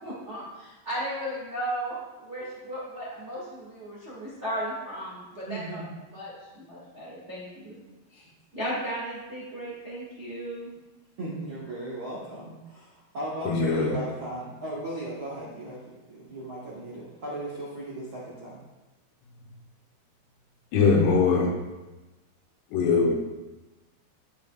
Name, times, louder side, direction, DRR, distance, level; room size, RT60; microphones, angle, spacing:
voice 1, 0.0-5.8 6.1-7.8 8.1-8.2 8.5-10.7, right 1 dB, 75° right, -7 dB, 0.6 m, -35 dB
voice 2, 5.5-5.9 11.2-15.8 16.1-18.6, right 1 dB, 90° right, -7 dB, 1.1 m, -36 dB
voice 3, 13.4-14.0 20.7-21.5 22.7-23.1, left 4 dB, 90° left, 1 dB, 3.1 m, -21 dB
13.0 x 5.1 x 2.3 m, 1.1 s
omnidirectional pair, 4.7 m